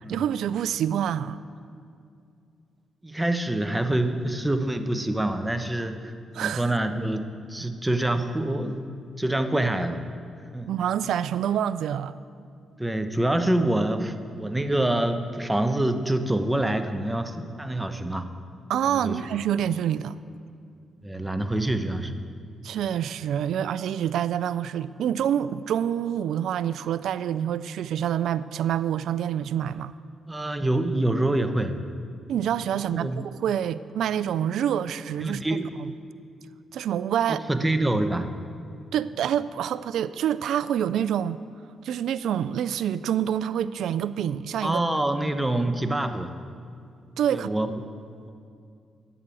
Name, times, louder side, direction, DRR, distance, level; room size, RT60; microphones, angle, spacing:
voice 1, 0.1-1.4 6.3-6.7 10.7-12.1 18.7-20.2 22.6-29.9 32.3-35.4 35.8-35.9 36.7-37.4 38.9-41.4 41.8-44.8 47.2-47.5, right 9 dB, 80° right, 16 dB, 0.3 m, -27 dB
voice 2, 3.0-8.9 9.2-10.0 10.5-10.7 12.8-18.2 18.9-19.2 21.0-22.1 30.3-31.8 32.9-33.3 35.2-35.7 37.3-38.3 44.6-46.3 47.3-47.7, right 1 dB, 10° right, 8 dB, 1.1 m, -26 dB
11.0 x 8.9 x 8.4 m, 2.4 s
supercardioid pair, 60°, 0 cm